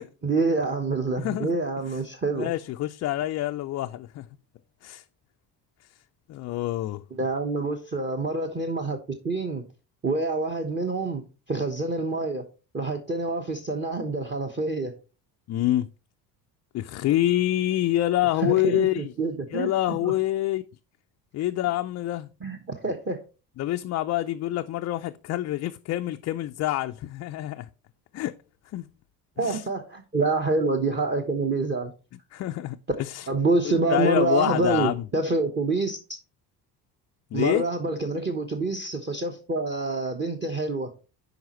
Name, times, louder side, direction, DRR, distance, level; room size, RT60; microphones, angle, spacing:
voice 1, 0.2-2.5 7.1-9.0 9.2-9.6 10.0-11.2 11.5-12.5 12.7-14.9 18.4-20.1 22.4-23.2 29.4-31.9 33.3-36.0 37.3-40.9, right 3 dB, 20° right, 1.2 m, -27 dB
voice 2, 1.2-1.5 2.4-4.3 4.8-5.0 6.3-7.0 15.5-15.9 16.7-19.1 19.5-20.6 21.3-22.3 23.6-27.7 28.1-28.4 28.7-28.9 29.4-29.6 32.3-33.3 33.9-35.0 37.3-37.6, left 14 dB, 35° left, 0.4 m, -26 dB
7.7 x 5.1 x 3.1 m
hypercardioid pair, 65°, 48 cm